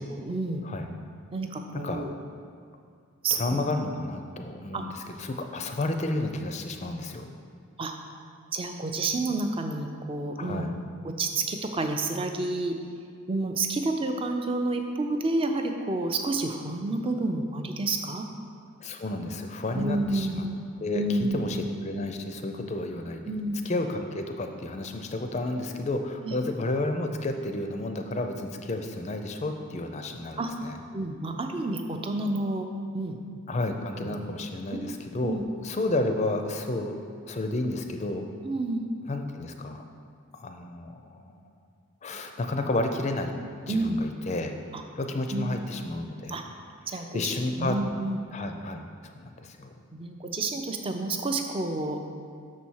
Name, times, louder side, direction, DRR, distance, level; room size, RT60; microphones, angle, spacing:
voice 1, 0.1-0.6 1.3-2.1 3.2-3.6 4.2-4.9 7.8-7.9 8.5-10.7 11.0-12.8 13.3-18.3 19.7-20.6 20.9-21.6 23.3-23.6 26.2-26.4 30.4-30.5 30.9-32.7 32.9-33.2 33.9-34.2 34.7-35.0 35.2-35.4 38.4-38.8 43.7-44.0 44.7-44.8 45.3-45.6 46.3-46.4 46.9-48.2 49.9-52.0, right 2 dB, 25° right, 5 dB, 0.4 m, -30 dB
voice 2, 3.3-7.3 10.4-10.7 18.8-20.5 20.8-23.2 23.6-30.8 33.5-35.4 35.6-37.0 37.2-38.2 39.1-39.8 40.4-41.4 42.0-43.3 43.7-44.6 45.0-46.4 47.0-47.8 48.3-49.8, left 2 dB, 30° left, 5 dB, 0.4 m, -31 dB
6.3 x 4.2 x 6.2 m, 2.2 s
head